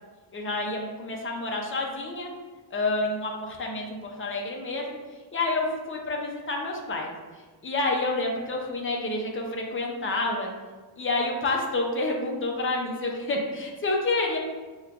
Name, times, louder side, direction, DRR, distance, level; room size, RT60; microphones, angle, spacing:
voice 1, 0.3-2.3 2.7-5.0 5.3-7.1 7.6-10.5 11.0-14.4, left 2 dB, 30° left, 0 dB, 0.6 m, -28 dB
6.1 x 2.2 x 2.4 m, 1.3 s
wide cardioid pair, 155°, 41 cm